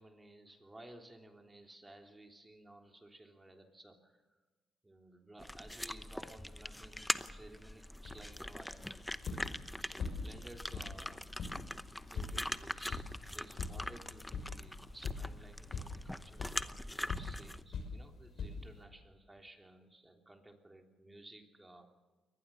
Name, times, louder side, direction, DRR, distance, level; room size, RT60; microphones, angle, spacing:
voice 1, 0.0-4.4 4.8-8.9 9.8-11.3 12.0-21.9, right 1 dB, 15° right, 3 dB, 3.3 m, -56 dB
sound 1, 5.4-17.6, left 1 dB, 5° left, 0.9 m, -43 dB
sound 2, 8.0-18.8, left 4 dB, 60° left, 6.1 m, -44 dB
23.0 x 19.0 x 7.1 m, 1.3 s
cardioid pair, 90°, 0 cm